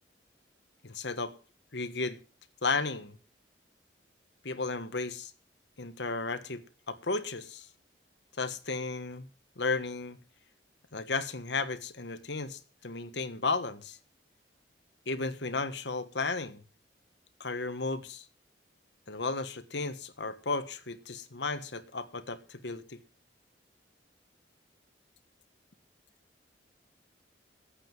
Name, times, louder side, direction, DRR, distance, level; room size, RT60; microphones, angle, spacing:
voice 1, 0.8-1.3 1.7-2.2 2.6-3.2 4.4-5.3 5.8-7.7 8.4-9.3 9.6-10.2 10.9-14.0 15.1-16.6 17.4-18.2 19.1-23.0, left 3 dB, 70° left, 1.4 m, -34 dB
9.7 x 8.9 x 9.1 m
head